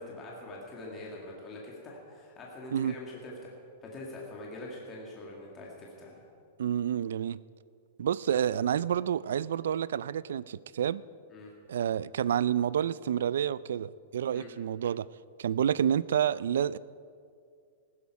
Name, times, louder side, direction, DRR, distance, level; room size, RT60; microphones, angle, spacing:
voice 1, 0.0-3.5 3.8-6.2 8.3-8.4 11.3-11.5 14.3-14.5, left 1 dB, 15° left, -3 dB, 1.9 m, -44 dB
voice 2, 6.6-7.4 8.0-11.0 11.7-15.1 15.4-16.8, right 9 dB, 85° right, 20 dB, 0.3 m, -29 dB
15.5 x 12.5 x 4.7 m, 2.3 s
supercardioid pair, 175°, 0 cm